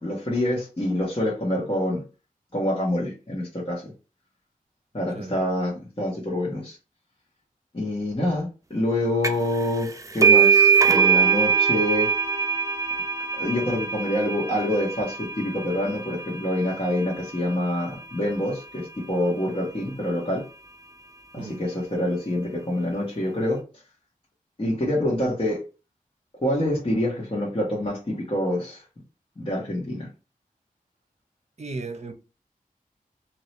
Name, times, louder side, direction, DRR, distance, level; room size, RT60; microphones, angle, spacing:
voice 1, 0.0-2.0 2.5-3.9 4.9-6.8 7.7-12.1 13.4-20.4 21.3-23.6 24.6-25.6 26.4-28.8 29.4-30.1, left 1 dB, 40° left, 1.5 m, -26 dB
sound 1, 9.2-9.6 9.8-17.1, right 6 dB, 20° right, 0.5 m, -22 dB
voice 2, 31.6-32.1, right 3 dB, 50° right, 0.8 m, -35 dB
2.9 x 2.7 x 3.2 m
cardioid pair, 55°, 15 cm